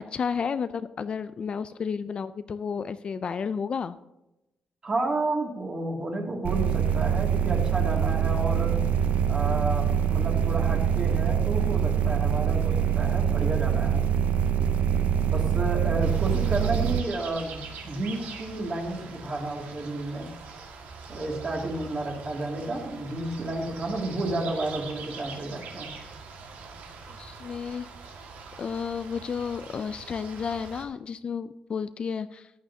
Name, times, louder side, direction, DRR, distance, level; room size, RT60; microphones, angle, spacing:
voice 1, 0.1-4.0 27.1-28.1 28.6-32.5, left 6 dB, 40° left, 13 dB, 0.4 m, -32 dB
voice 2, 4.8-8.8 9.3-14.1 15.3-20.3 21.1-25.9, right 2 dB, 30° right, 0 dB, 2.3 m, -31 dB
sound 1, 6.4-17.0, right 8 dB, 65° right, 0.6 m, -24 dB
sound 2, 16.0-30.8, right 5 dB, 90° right, 1.8 m, -43 dB
14.5 x 9.5 x 2.8 m, 0.92 s
cardioid pair, 140°, 3 cm